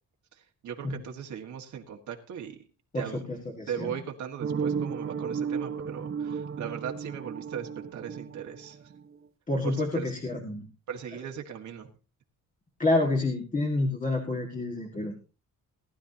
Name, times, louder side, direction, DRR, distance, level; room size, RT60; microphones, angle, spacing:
voice 1, 0.3-2.6 2.9-3.4 3.7-8.9 9.6-10.1 10.9-11.9, right 8 dB, 65° right, 2 dB, 1.7 m, -38 dB
voice 2, 2.9-3.9 9.5-10.7 12.8-15.3, left 2 dB, 25° left, 1 dB, 1.9 m, -28 dB
sound 1, 4.4-9.2, right 6 dB, 40° right, 1.1 m, -34 dB
19.0 x 11.5 x 2.8 m, 0.33 s
cardioid pair, 145°, 32 cm